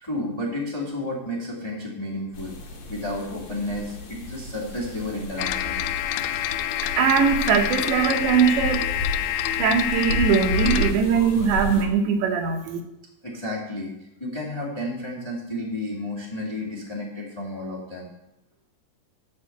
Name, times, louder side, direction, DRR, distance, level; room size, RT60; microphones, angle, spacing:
voice 1, 0.0-2.5 2.9-5.8 13.2-18.1, left 1 dB, 15° left, -4 dB, 0.8 m, -32 dB
sound 1, 2.3-11.8, left 1 dB, 60° left, 1.8 m, -32 dB
sound 2, 5.4-10.9, left 12 dB, 85° left, 2.9 m, -27 dB
voice 2, 7.0-8.9 9.4-12.8, right 6 dB, 80° right, 5 dB, 3.2 m, -21 dB
12.5 x 4.6 x 7.9 m, 0.90 s
omnidirectional pair, 5.3 m